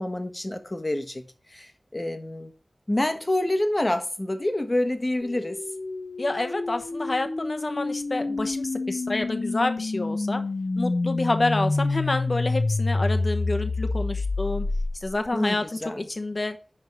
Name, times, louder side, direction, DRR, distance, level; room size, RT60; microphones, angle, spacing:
voice 1, 0.0-2.5 2.9-5.6 15.3-16.1, left 1 dB, 30° left, 1.3 m, -27 dB
sound 1, 5.2-15.3, left 3 dB, 70° left, 0.5 m, -28 dB
voice 2, 6.2-10.4 10.8-14.7 15.0-16.6, left 2 dB, 55° left, 1.0 m, -28 dB
10.5 x 3.7 x 4.7 m
wide cardioid pair, 45°, 0 cm